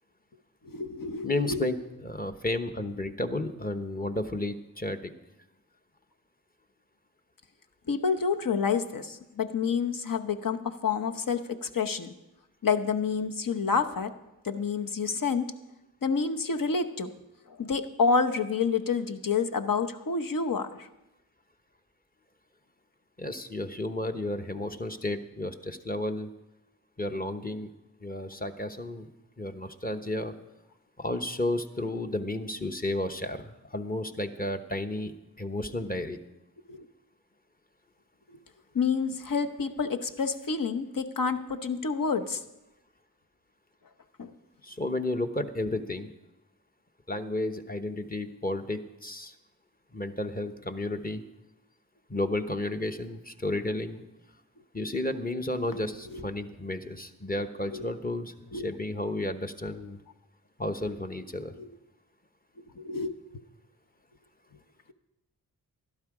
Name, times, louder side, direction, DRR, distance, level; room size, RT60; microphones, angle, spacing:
voice 1, 0.6-1.6 7.9-12.1 12.6-14.1 14.4-15.5 16.0-17.1 17.5-20.9 36.7-36.8 38.7-42.4 44.2-44.3 55.6-55.8 56.1-56.2 57.7-57.9 58.5-58.7 61.6-61.7 62.6-63.1, left 5 dB, 60° left, 7 dB, 1.0 m, -28 dB
voice 2, 1.2-5.1 23.2-26.3 27.0-27.7 28.0-29.1 29.4-30.3 31.0-35.1 35.4-36.2 44.6-46.1 47.1-49.3 49.9-51.2 52.1-54.0 54.7-60.0 60.6-61.5, left 1 dB, 25° left, 6 dB, 1.0 m, -32 dB
12.0 x 12.0 x 4.9 m, 0.95 s
cardioid pair, 45°, 38 cm